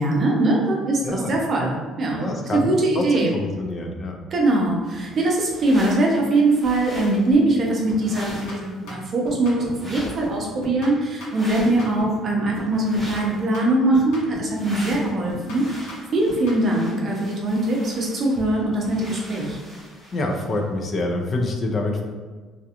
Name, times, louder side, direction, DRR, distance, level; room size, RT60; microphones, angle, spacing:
voice 1, 0.0-3.3 4.3-19.6, right 2 dB, 40° right, -1 dB, 0.6 m, -22 dB
voice 2, 1.0-1.3 2.2-4.2 20.1-22.0, left 2 dB, 35° left, 2 dB, 0.4 m, -26 dB
sound 1, 5.1-6.2 6.5-7.3 7.9-8.8 9.7-10.5 11.3-11.9 12.7-13.4 14.5-20.6, equal, ahead, 0.7 m, -41 dB
sound 2, 7.3-7.6 7.9-9.9 10.2-12.3 12.6-14.6 14.9-16.7, left 1 dB, 85° left, 0.8 m, -37 dB
2.4 x 2.3 x 2.8 m, 1.4 s
cardioid pair, 130°, 0 cm